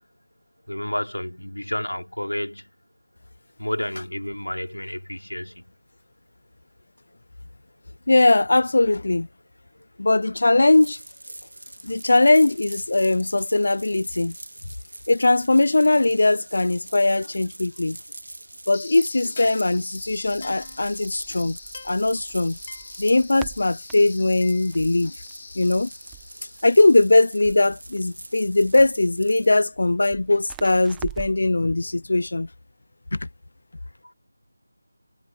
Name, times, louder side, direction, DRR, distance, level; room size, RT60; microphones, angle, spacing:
voice 1, 0.7-2.7 3.6-5.7 17.2-17.3 34.0-34.1, left 1 dB, 85° left, 3.5 m, -30 dB
voice 2, 8.1-9.3 10.0-11.0 11.8-14.3 15.1-18.0 18.7-21.6 21.8-22.6 23.0-25.1 25.6-25.9 26.6-32.5 33.1-33.2, left 2 dB, 55° left, 0.7 m, -20 dB
sound 1, 10.6-29.6, right 1 dB, 70° right, 2.9 m, -43 dB
sound 2, 18.7-27.8, left 4 dB, 35° left, 2.8 m, -44 dB
Crackle, 20.0-31.5, right 22 dB, 10° right, 1.7 m, -46 dB
figure-of-eight pair, 165°, 0 cm